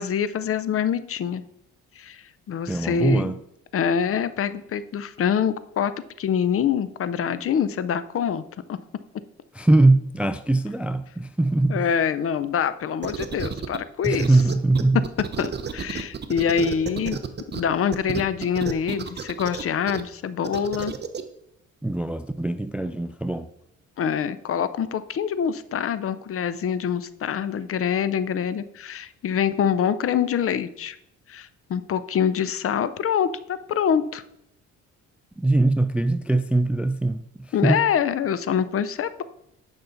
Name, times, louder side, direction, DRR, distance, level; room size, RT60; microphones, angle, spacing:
voice 1, 0.0-1.4 2.0-3.3 3.7-5.9 6.2-8.4 8.7-8.8 11.7-14.3 15.4-17.2 17.5-20.9 24.0-31.0 31.3-34.2 37.5-39.2, left 7 dB, 50° left, 0.6 m, -25 dB
voice 2, 2.7-3.4 9.5-11.9 14.0-15.0 21.8-23.5 35.4-37.9, right 2 dB, 5° right, 0.3 m, -22 dB
sound 1, 13.0-13.8 14.0-17.6 17.9-20.0 20.4-21.2, right 6 dB, 35° right, 0.8 m, -31 dB
9.0 x 5.5 x 3.9 m
cardioid pair, 90°, 30 cm